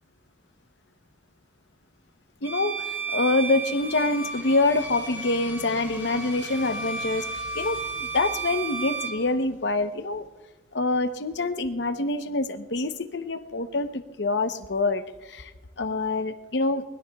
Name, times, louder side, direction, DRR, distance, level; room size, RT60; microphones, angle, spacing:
voice 1, 2.4-10.3 10.7-15.5 15.8-16.8, left 2 dB, 65° left, 9 dB, 0.8 m, -26 dB
Bowed string instrument, 2.4-9.2, right 4 dB, 10° right, 1.2 m, -33 dB
24.0 x 20.0 x 2.3 m, 1.3 s
head